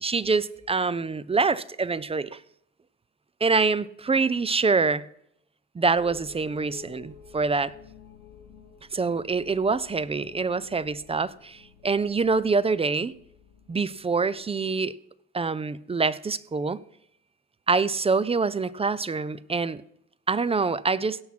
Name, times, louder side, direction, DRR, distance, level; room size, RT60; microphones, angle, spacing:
voice 1, 0.0-2.4 3.4-5.1 5.7-7.7 8.9-13.1 13.7-14.9 15.3-16.8 17.7-19.8 20.3-21.2, right 4 dB, 20° right, 0.4 m, -25 dB
sound 1, 6.0-14.4, left 7 dB, 85° left, 1.4 m, -51 dB
16.5 x 5.8 x 6.0 m
cardioid pair, 90°, 30 cm